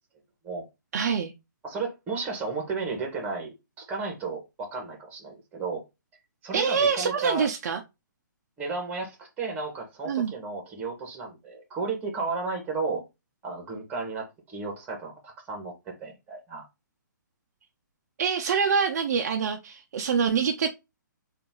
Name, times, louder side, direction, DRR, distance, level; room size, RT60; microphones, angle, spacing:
voice 1, 0.9-1.3 6.5-7.8 10.1-10.3 18.2-20.7, right 6 dB, 55° right, 0.6 m, -25 dB
voice 2, 1.6-5.8 6.4-7.5 8.6-13.0 13.4-16.6, right 4 dB, 15° right, 1.4 m, -33 dB
3.9 x 2.6 x 3.7 m
hypercardioid pair, 150°, 11 cm